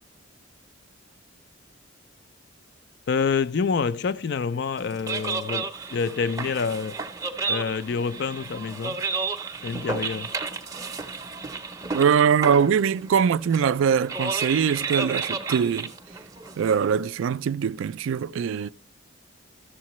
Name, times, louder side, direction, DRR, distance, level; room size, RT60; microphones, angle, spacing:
voice 1, 3.1-7.0 7.5-9.0 9.6-10.3, left 5 dB, 55° left, 0.4 m, -27 dB
sound 1, 4.8-17.0, right 4 dB, 15° right, 0.6 m, -32 dB
voice 2, 11.9-15.9 16.6-18.7, right 7 dB, 70° right, 0.3 m, -22 dB
12.5 x 7.3 x 3.0 m
head